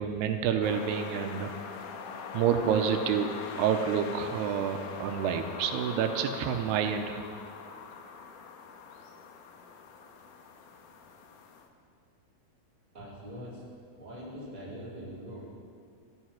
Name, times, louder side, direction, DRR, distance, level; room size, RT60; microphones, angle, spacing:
voice 1, 0.0-1.7 2.3-7.2, right 7 dB, 85° right, 6 dB, 2.8 m, -28 dB
sound 1, 0.6-11.7, left 5 dB, 70° left, 2.2 m, -43 dB
voice 2, 12.9-13.7 14.0-15.5, equal, 10° right, -6 dB, 3.5 m, -42 dB
14.5 x 13.5 x 5.9 m, 2.2 s
omnidirectional pair, 4.6 m